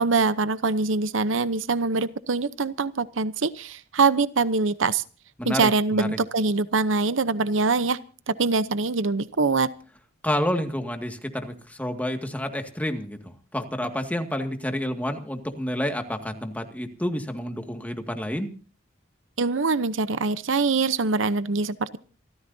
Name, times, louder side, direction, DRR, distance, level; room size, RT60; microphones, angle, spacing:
voice 1, 0.0-5.0 5.4-8.0 8.3-9.7 19.4-22.0, right 4 dB, 75° right, 15 dB, 0.8 m, -23 dB
voice 2, 5.4-6.2 10.2-18.5, equal, 10° left, 5 dB, 2.0 m, -29 dB
27.5 x 14.5 x 2.7 m, 0.37 s
head